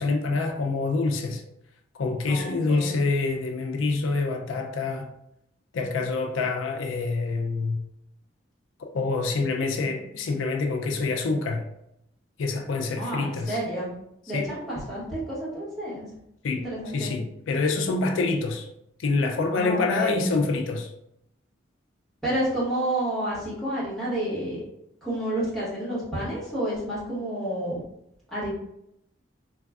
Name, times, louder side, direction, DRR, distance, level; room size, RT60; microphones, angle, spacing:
voice 1, 0.0-1.4 2.0-5.1 5.7-7.8 8.8-11.7 12.4-13.6 14.3-14.5 16.4-16.6 16.9-18.7 19.0-20.9, left 3 dB, 90° left, 0.4 m, -26 dB
voice 2, 2.3-2.9 13.0-13.9 14.3-16.1 16.6-17.1 19.5-20.3 22.2-24.6 25.0-27.8 28.3-28.5, right 1 dB, ahead, 1.1 m, -30 dB
3.2 x 2.3 x 2.3 m
head